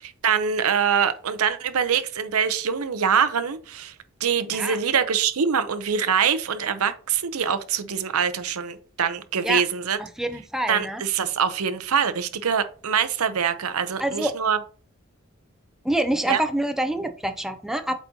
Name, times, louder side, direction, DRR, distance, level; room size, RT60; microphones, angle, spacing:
voice 1, 0.0-3.9 4.2-10.0 10.7-14.6 16.3-16.4, right 7 dB, 80° right, 0.7 m, -24 dB
voice 2, 10.2-11.0 14.0-14.3 15.8-17.9, right 1 dB, ahead, 0.5 m, -26 dB
8.1 x 4.2 x 2.8 m
head